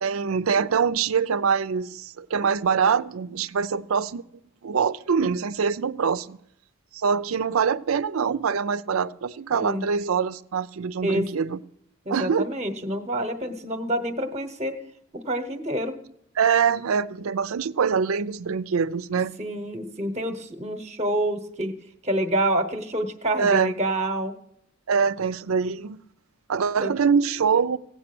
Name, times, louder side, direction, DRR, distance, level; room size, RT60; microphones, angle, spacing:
voice 1, 0.0-4.2 4.6-6.4 6.9-11.6 12.1-12.5 16.4-19.3 23.4-23.7 24.9-26.0 26.5-27.8, right 6 dB, 90° right, 0.5 m, -24 dB
voice 2, 9.5-9.8 11.0-11.3 12.1-14.7 15.1-15.9 19.4-21.7 22.0-24.3 26.8-27.0, right 1 dB, 30° right, 0.9 m, -27 dB
16.5 x 8.2 x 6.0 m
head